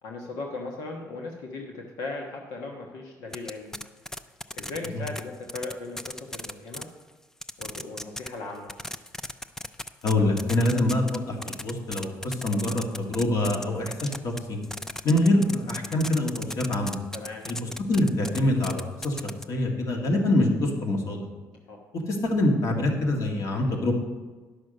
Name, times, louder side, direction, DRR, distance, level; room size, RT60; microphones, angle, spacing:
voice 1, 0.0-3.8 4.5-6.9 7.6-8.8 17.1-17.4 21.7-21.8, left 3 dB, 85° left, 1 dB, 1.2 m, -37 dB
sound 1, 3.3-5.2 5.5-6.8 7.4-8.3 8.5-11.2 11.4-19.4, left 1 dB, 5° left, 0.4 m, -35 dB
voice 2, 10.0-14.6 15.0-17.0 17.5-17.6 17.9-19.2 19.5-21.3 21.9-23.9, left 1 dB, 55° left, 2 dB, 2.0 m, -25 dB
10.5 x 6.3 x 6.5 m, 1.3 s
cardioid pair, 115°, 7 cm